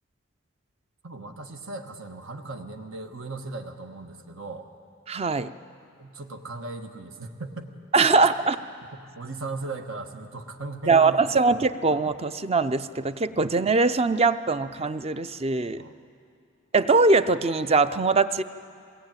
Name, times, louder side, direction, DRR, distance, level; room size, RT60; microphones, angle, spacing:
voice 1, 1.0-4.7 6.0-7.7 8.0-8.1 8.9-11.4 15.8-15.9, right 3 dB, 80° right, 4 dB, 1.3 m, -37 dB
voice 2, 5.1-5.5 7.9-8.6 10.9-15.8 16.7-18.4, right 3 dB, 30° right, 12 dB, 0.5 m, -22 dB
21.5 x 18.0 x 9.0 m, 2.4 s
head